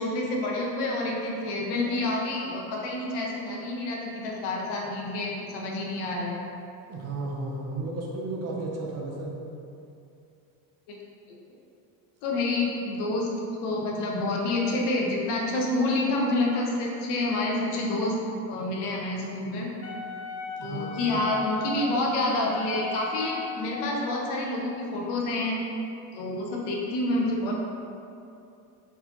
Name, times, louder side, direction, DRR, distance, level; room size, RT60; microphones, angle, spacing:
voice 1, 0.0-6.4 10.9-11.0 12.2-13.3 13.6-18.1 18.5-19.7 20.6-25.6 26.1-27.5, left 2 dB, 70° left, -2 dB, 0.9 m, -28 dB
voice 2, 6.9-9.4 20.6-21.2, right 2 dB, 40° right, -2 dB, 0.6 m, -34 dB
Wind instrument woodwind instrument, 19.8-24.0, left 4 dB, 35° left, 0.4 m, -37 dB
4.3 x 4.0 x 2.9 m, 2.6 s
cardioid pair, 150°, 42 cm